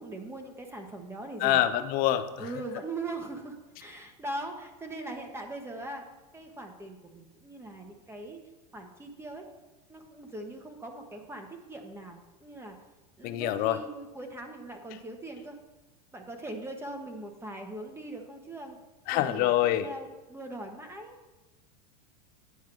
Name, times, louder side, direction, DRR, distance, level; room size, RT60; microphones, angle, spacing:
voice 1, 0.0-1.6 2.4-6.1 6.3-8.4 8.7-9.4 9.9-12.8 13.2-15.6 16.1-18.8 19.1-21.2, right 2 dB, 10° right, 4 dB, 1.1 m, -41 dB
voice 2, 1.4-2.5 13.2-13.8 19.1-19.9, left 12 dB, 45° left, 11 dB, 0.7 m, -26 dB
9.5 x 4.7 x 6.0 m, 1.1 s
hypercardioid pair, 115°, 20 cm